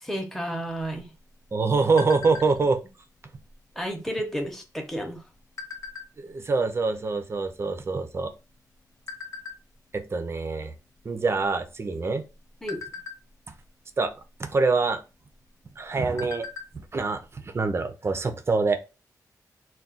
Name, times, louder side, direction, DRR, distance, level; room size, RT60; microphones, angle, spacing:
voice 1, 0.0-1.1 2.6-2.7 3.8-5.2 12.6-12.8, equal, 5° left, 2 dB, 0.7 m, -32 dB
sound 1, 0.8-2.8 3.3-3.5 3.8-4.2 4.9-6.4 7.0-7.1 7.3-8.6 9.1-9.6 10.1-10.3 10.7-10.9 11.3-11.8 12.3-13.7 14.8-14.9 15.3-15.4 15.8-16.8 17.1-17.2 17.6-17.7, left 5 dB, 45° left, 0.5 m, -40 dB
voice 2, 1.5-2.8 6.2-8.3 9.9-10.7 11.1-12.2 14.0-14.1 14.4-15.0 15.8-16.5 16.9-18.8, right 4 dB, 40° right, 8 dB, 0.4 m, -25 dB
2.3 x 2.2 x 3.8 m, 0.29 s
wide cardioid pair, 105°, 7 cm